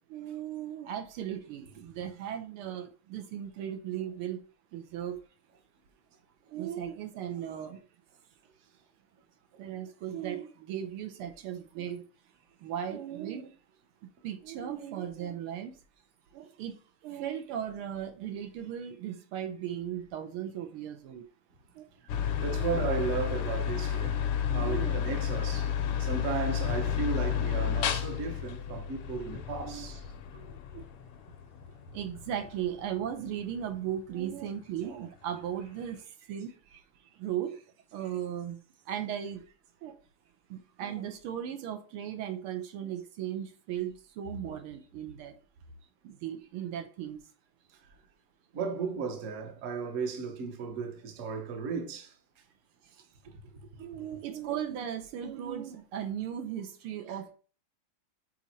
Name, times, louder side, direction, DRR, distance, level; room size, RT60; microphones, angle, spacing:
voice 1, 0.1-4.5 4.7-5.2 6.5-7.8 9.6-12.1 12.6-13.5 14.2-15.8 16.3-16.8 17.0-21.2 21.7-21.9 22.5-22.9 24.5-25.1 29.6-29.9 30.3-30.8 31.9-36.8 37.1-37.6 37.9-38.6 38.9-39.5 39.8-40.0 40.5-45.4 46.0-47.2 52.8-53.0 53.8-57.3, right 10 dB, 80° right, 1.7 m, -37 dB
sound 1, 22.1-34.4, left 9 dB, 85° left, 1.7 m, -32 dB
voice 2, 22.4-30.0 48.5-52.1, right 5 dB, 45° right, 1.1 m, -35 dB
6.1 x 4.1 x 4.0 m
omnidirectional pair, 2.4 m